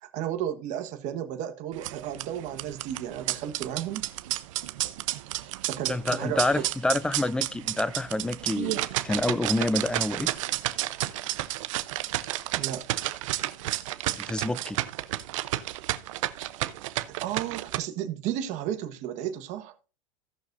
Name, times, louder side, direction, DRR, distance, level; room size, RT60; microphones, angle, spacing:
voice 1, 0.0-4.1 5.4-6.7 12.6-12.9 17.2-19.7, right 10 dB, 45° right, 1.4 m, -33 dB
sound 1, 1.7-17.8, right 16 dB, 70° right, 0.8 m, -31 dB
voice 2, 5.9-8.8 9.0-10.3 14.2-14.8, left 2 dB, 5° left, 0.4 m, -27 dB
17.0 x 6.2 x 2.6 m
supercardioid pair, 130°, 17 cm